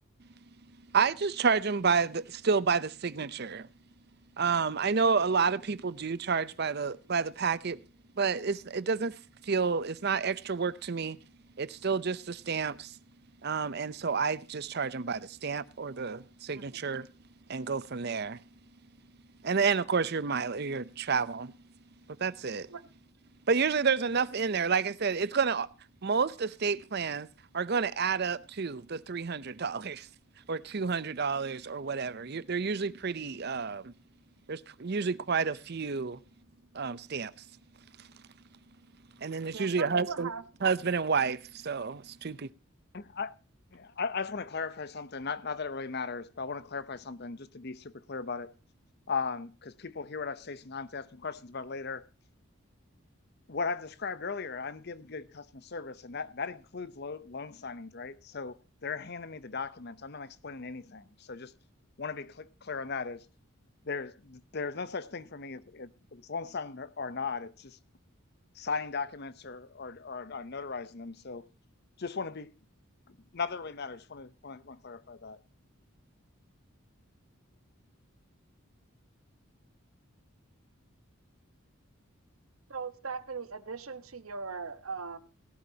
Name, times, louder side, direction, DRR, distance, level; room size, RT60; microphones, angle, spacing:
voice 1, 0.9-3.7 4.4-7.8 8.2-9.2 9.4-11.2 11.6-12.9 13.4-17.1 17.5-18.4 19.4-21.5 22.2-22.7 23.5-25.7 26.0-27.3 27.5-30.1 30.5-33.9 34.5-36.2 36.7-37.3 38.0-38.1 39.2-40.3 40.6-42.5, right 5 dB, 50° right, 0.6 m, -30 dB
voice 2, 16.5-16.9 22.7-22.8 39.5-40.4 82.7-85.2, right 5 dB, 85° right, 1.2 m, -39 dB
voice 3, 42.9-43.3 43.8-48.5 49.1-52.1 53.5-61.5 62.0-63.2 63.8-67.8 68.5-71.5 72.0-72.5 73.1-75.4, left 5 dB, 50° left, 0.7 m, -37 dB
18.0 x 12.5 x 2.8 m
head